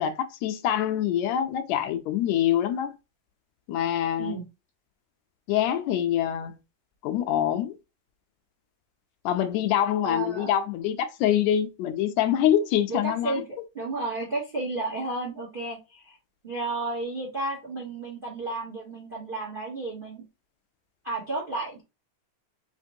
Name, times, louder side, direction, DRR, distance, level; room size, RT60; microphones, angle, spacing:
voice 1, 0.0-2.9 3.7-4.3 5.5-6.6 7.0-7.8 9.2-13.3, left 10 dB, 80° left, 1.7 m, -25 dB
voice 2, 10.0-10.5 12.9-13.4 13.7-16.2 16.4-20.2 21.0-21.8, right 2 dB, 80° right, 0.4 m, -32 dB
5.1 x 2.9 x 2.6 m
omnidirectional pair, 3.3 m